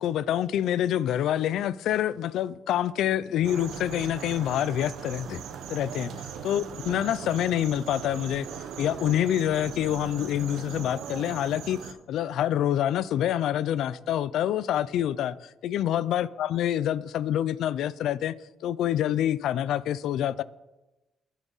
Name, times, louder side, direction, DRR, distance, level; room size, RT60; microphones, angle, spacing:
voice 1, 0.0-5.4 5.7-8.5 8.8-18.4 18.6-20.4, left 11 dB, 80° left, 0.4 m, -27 dB
sound 1, 3.4-11.9, right 7 dB, 80° right, 1.1 m, -39 dB
21.5 x 7.2 x 4.1 m
cardioid pair, 90°, 0 cm